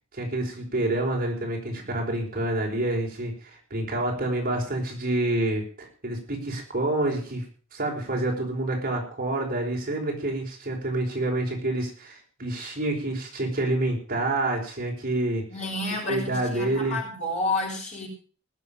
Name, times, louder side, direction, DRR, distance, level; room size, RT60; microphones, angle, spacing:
voice 1, 0.1-7.4 7.7-15.4 16.1-17.0, right 2 dB, 45° right, 0 dB, 4.8 m, -28 dB
voice 2, 15.5-18.1, left 2 dB, 35° left, -1 dB, 6.9 m, -30 dB
19.5 x 7.7 x 7.0 m, 0.40 s
head